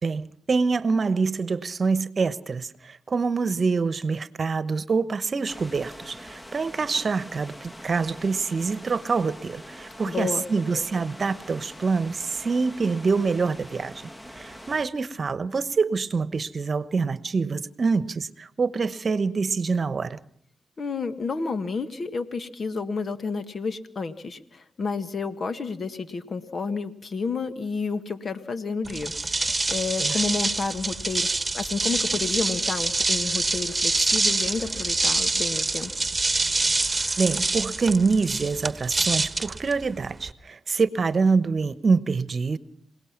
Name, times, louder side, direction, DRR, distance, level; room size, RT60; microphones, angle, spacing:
voice 1, 0.0-13.9 14.4-20.2 30.0-30.2 37.2-42.6, right 4 dB, 50° right, 16 dB, 1.1 m, -25 dB
sound 1, 5.5-14.9, equal, 15° left, 1.5 m, -44 dB
voice 2, 10.1-10.4 10.7-10.8 20.8-35.9, left 4 dB, 55° left, 11 dB, 1.8 m, -30 dB
sound 2, 28.8-40.3, right 3 dB, 25° right, 1.4 m, -26 dB
27.5 x 18.0 x 6.0 m, 0.62 s
supercardioid pair, 50°, 0 cm